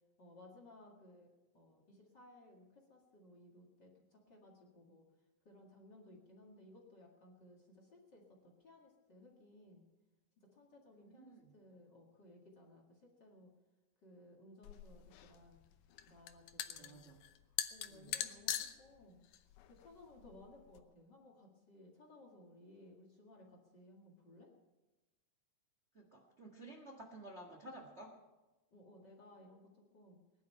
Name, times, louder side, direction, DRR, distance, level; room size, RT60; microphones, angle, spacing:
voice 1, 0.2-5.0 5.4-9.8 10.4-13.5 14.0-15.6 16.1-17.1 17.7-19.2 19.7-24.5 28.7-30.2, left 1 dB, 40° left, -1 dB, 1.8 m, -60 dB
voice 2, 11.0-11.6 16.6-17.2 17.9-18.2 25.9-28.2, right 1 dB, 50° right, 1 dB, 0.7 m, -54 dB
sound 1, 14.6-20.8, left 11 dB, 75° left, 2.1 m, -44 dB
20.5 x 11.0 x 5.6 m, 1.1 s
omnidirectional pair, 4.4 m